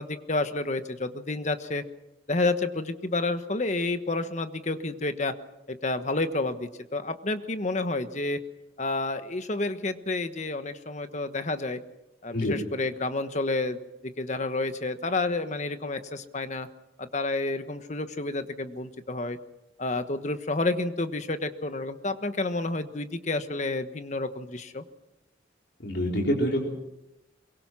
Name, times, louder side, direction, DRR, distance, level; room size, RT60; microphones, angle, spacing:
voice 1, 0.0-1.8 2.3-5.3 5.7-8.4 8.8-11.8 12.2-13.8 14.2-16.7 17.0-19.4 19.8-24.8, left 2 dB, 40° left, 9 dB, 1.3 m, -30 dB
voice 2, 25.8-26.7, equal, 65° left, -1 dB, 4.4 m, -26 dB
23.5 x 23.0 x 6.2 m, 0.91 s
head